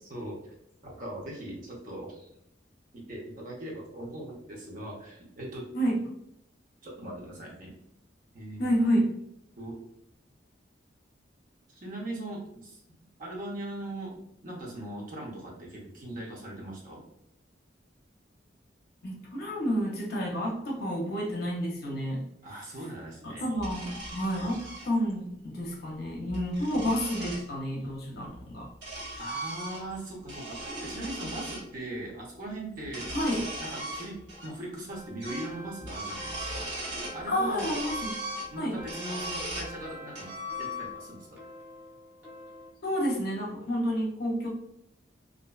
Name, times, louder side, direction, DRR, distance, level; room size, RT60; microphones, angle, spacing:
voice 1, 0.0-0.5 0.8-2.3 3.1-5.6 6.8-7.7 8.3-8.7 9.6-9.8 11.7-17.0 22.4-23.4 29.2-33.1 33.6-34.2 34.4-36.7 37.1-37.8 38.5-40.3 40.6-41.4, right 1 dB, 45° right, -3 dB, 0.7 m, -40 dB
voice 2, 8.6-9.1 19.0-22.2 23.2-28.7 33.1-33.4 37.3-38.1 38.6-38.8 42.8-44.5, equal, 55° left, -1 dB, 0.6 m, -29 dB
sound 1, 23.6-24.9 26.1-27.4 28.3-30.0 30.2-31.6 32.8-34.5 34.8-34.9 35.2-35.5 35.8-37.2 37.6-39.7 40.1-41.1, right 1 dB, 70° right, 1.0 m, -38 dB
sound 2, 34.9-42.7, equal, 10° right, 0.7 m, -47 dB
2.5 x 2.2 x 2.3 m, 0.77 s
head